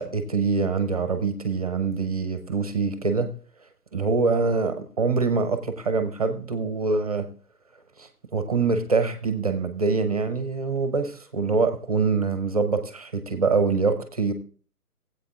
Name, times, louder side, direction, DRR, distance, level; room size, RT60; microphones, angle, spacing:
voice 1, 0.0-3.3 3.9-7.3 8.0-14.3, right 4 dB, 25° right, 9 dB, 0.7 m, -24 dB
19.0 x 8.1 x 2.4 m, 0.43 s
figure-of-eight pair, 135°, 46 cm